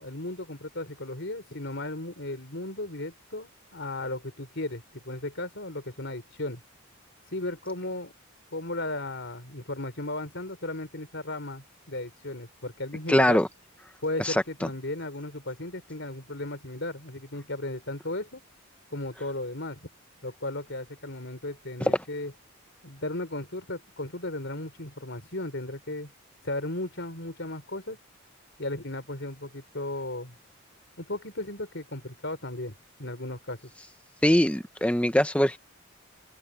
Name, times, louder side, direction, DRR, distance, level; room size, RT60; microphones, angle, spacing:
voice 1, 0.0-6.6 7.3-8.1 8.5-13.4 14.0-18.4 18.9-19.9 20.2-22.3 22.8-26.1 26.4-28.0 28.6-30.3 31.0-32.7 33.0-33.6, left 2 dB, 55° left, 4.6 m, -35 dB
voice 2, 13.1-13.5 14.2-14.4 34.2-35.6, left 1 dB, 5° left, 1.0 m, -22 dB
open air
head